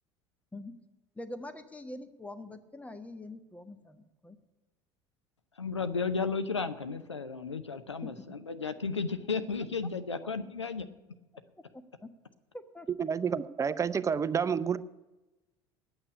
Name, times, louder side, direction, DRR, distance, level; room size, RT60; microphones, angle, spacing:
voice 1, 1.1-4.4 8.0-8.3 9.8-9.9 10.2-10.3 11.7-12.1 12.5-12.9 13.2-13.3, left 1 dB, 10° left, 10 dB, 1.2 m, -44 dB
voice 2, 5.6-10.9, left 4 dB, 85° left, 9 dB, 0.8 m, -33 dB
voice 3, 13.0-14.8, right 6 dB, 20° right, 15 dB, 0.6 m, -29 dB
9.9 x 8.8 x 9.9 m, 1.1 s
figure-of-eight pair, 65°, 15 cm